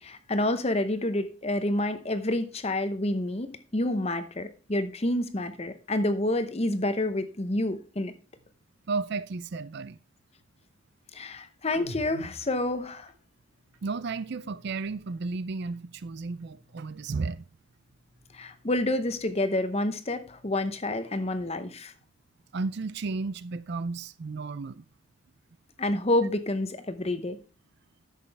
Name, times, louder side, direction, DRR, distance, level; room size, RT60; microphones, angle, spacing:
voice 1, 0.0-8.1 11.1-13.1 18.3-21.9 25.8-27.4, left 1 dB, 30° left, 0.8 m, -28 dB
voice 2, 8.9-10.0 13.8-17.5 22.5-24.8, right 4 dB, 50° right, 0.4 m, -33 dB
sound 1, 11.7-15.3 15.6-17.4 17.7-19.6 19.9-21.8, right 1 dB, 80° right, 2.0 m, -51 dB
11.0 x 7.6 x 3.4 m
head